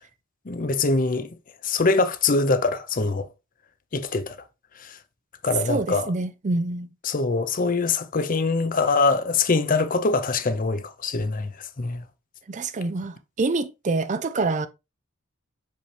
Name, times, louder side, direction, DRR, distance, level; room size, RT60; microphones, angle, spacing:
voice 1, 0.5-1.3 1.6-3.3 3.9-4.4 4.8-5.0 5.4-6.1 7.0-12.0, left 3 dB, 40° left, 0.7 m, -23 dB
voice 2, 5.7-6.9 12.5-14.7, right 3 dB, 35° right, 0.5 m, -26 dB
5.9 x 5.2 x 3.3 m
head